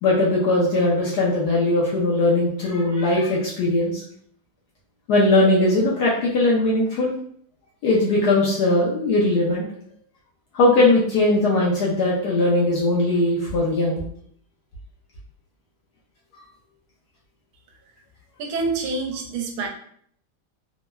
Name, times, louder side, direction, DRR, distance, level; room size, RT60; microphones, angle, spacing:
voice 1, 0.0-4.0 5.1-7.1 7.8-9.6 10.5-14.0, left 2 dB, 75° left, -4 dB, 0.9 m, -19 dB
voice 2, 18.4-19.7, right 3 dB, 90° right, 2 dB, 1.4 m, -27 dB
3.5 x 2.0 x 2.2 m, 0.64 s
omnidirectional pair, 2.2 m